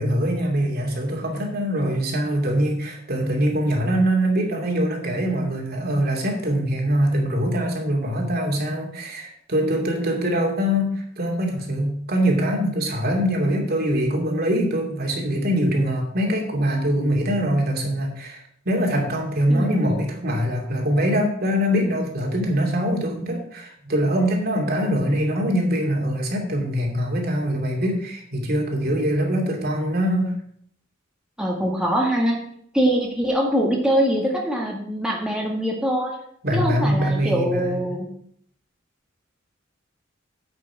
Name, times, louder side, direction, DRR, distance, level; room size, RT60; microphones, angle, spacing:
voice 1, 0.0-30.3 36.4-38.0, equal, 55° right, 1 dB, 2.7 m, -23 dB
voice 2, 19.5-20.0 31.4-32.4 32.7-36.2 36.5-38.1, equal, 5° right, -2 dB, 1.8 m, -23 dB
9.1 x 6.0 x 7.3 m, 0.64 s
head